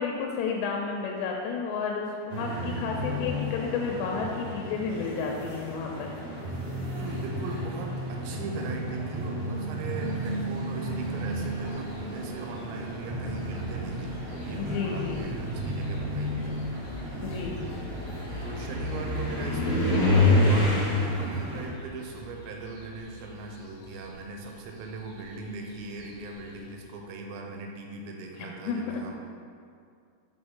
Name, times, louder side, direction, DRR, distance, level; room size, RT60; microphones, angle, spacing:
voice 1, 0.0-6.1 14.6-15.3 17.2-17.6 28.4-29.1, left 5 dB, 85° left, 0 dB, 2.7 m, -32 dB
sound 1, 2.3-21.7, equal, 55° right, 2.3 m, -35 dB
voice 2, 6.9-16.6 16.9-17.1 18.4-29.1, right 4 dB, 90° right, 2 dB, 2.9 m, -39 dB
sound 2, 11.4-11.9 12.9-13.0 13.6-23.5 23.8-26.4, left 2 dB, 60° left, 1.7 m, -28 dB
Bass drum, 13.5-13.7 14.0-14.6 15.0-15.6 15.9-16.5 16.8-17.4 17.8-18.4 18.7-19.3 19.6-20.3 20.6-20.7, right 1 dB, 70° right, 2.8 m, -47 dB
6.0 x 5.4 x 3.6 m, 2.3 s
omnidirectional pair, 5.0 m